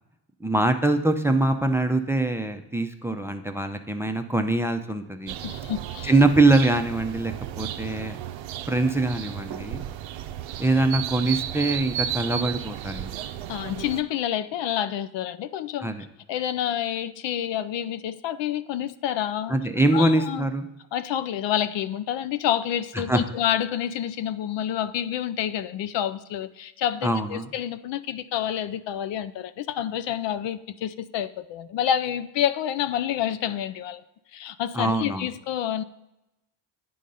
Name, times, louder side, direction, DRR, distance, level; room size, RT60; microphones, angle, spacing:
voice 1, 0.4-5.4 6.0-8.2 8.7-9.8 10.6-13.1 15.8-16.0 19.5-20.7 23.1-23.2 27.0-27.5 34.7-35.3, right 2 dB, 5° right, 7 dB, 0.5 m, -23 dB
sound 1, 5.3-14.0, right 11 dB, 75° right, 0.6 m, -34 dB
voice 2, 5.4-6.1 13.5-15.9 16.3-19.6 19.9-20.5 20.9-34.0 34.3-35.8, left 10 dB, 70° left, 12 dB, 0.5 m, -28 dB
9.0 x 3.8 x 5.4 m, 0.91 s
cardioid pair, 80°, 46 cm